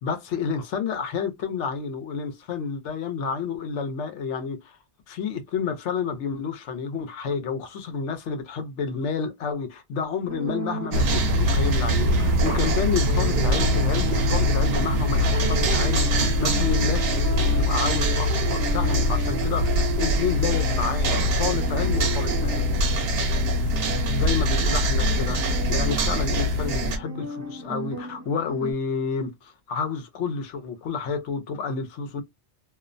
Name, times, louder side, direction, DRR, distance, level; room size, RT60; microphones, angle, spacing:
voice 1, 0.0-4.8 5.1-16.1 16.4-22.7 24.1-32.2, left 6 dB, 85° left, 1.0 m, -30 dB
sound 1, 10.3-28.7, right 3 dB, 25° right, 0.5 m, -34 dB
sound 2, 10.9-27.0, equal, 65° right, 0.8 m, -23 dB
2.4 x 2.1 x 2.5 m
omnidirectional pair, 1.2 m